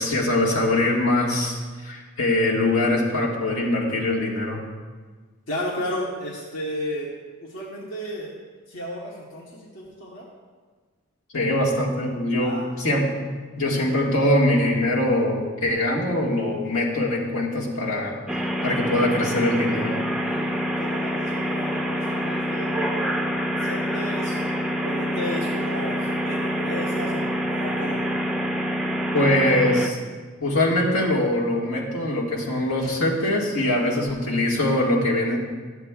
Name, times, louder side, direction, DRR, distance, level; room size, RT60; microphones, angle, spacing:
voice 1, 0.0-4.6 11.3-13.1 13.6-18.1 18.6-20.0 29.1-30.0 30.4-35.4, left 1 dB, 80° left, -3 dB, 1.7 m, -22 dB
voice 2, 5.5-8.3 8.7-10.2 12.4-13.0 20.2-23.2 23.6-24.4 24.8-28.0 33.8-33.9, equal, 60° left, -5 dB, 1.1 m, -34 dB
sound 1, 18.3-29.9, equal, 5° right, 0.4 m, -26 dB
13.0 x 8.0 x 2.3 m, 1.4 s
head